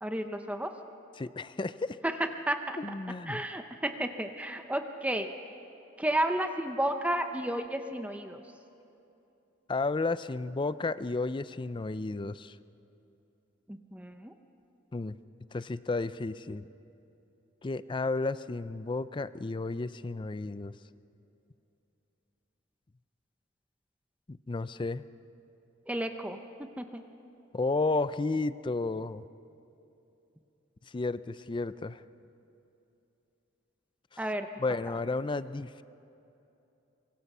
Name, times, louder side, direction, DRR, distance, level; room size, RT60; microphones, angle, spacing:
voice 1, 0.0-0.7 2.0-2.8 3.3-5.3 6.0-8.4 13.7-14.3 25.9-26.4 26.8-27.0 34.2-34.5, right 1 dB, 5° right, 6 dB, 0.7 m, -32 dB
voice 2, 1.2-2.0 2.8-3.4 9.7-12.5 14.9-15.2 15.5-16.6 17.6-20.7 24.3-25.0 27.5-29.2 30.9-32.0 34.6-35.8, left 3 dB, 25° left, 15 dB, 0.4 m, -32 dB
24.5 x 24.0 x 5.5 m, 2.9 s
head